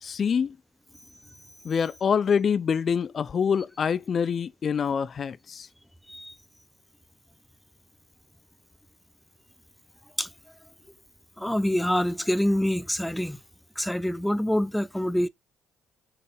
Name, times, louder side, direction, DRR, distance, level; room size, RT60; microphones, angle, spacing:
voice 1, 0.0-0.6 1.6-5.7, left 6 dB, 50° left, 0.4 m, -25 dB
voice 2, 11.4-13.4 13.8-15.3, equal, 5° left, 0.7 m, -26 dB
6.5 x 4.0 x 3.6 m
supercardioid pair, 60°, 0 cm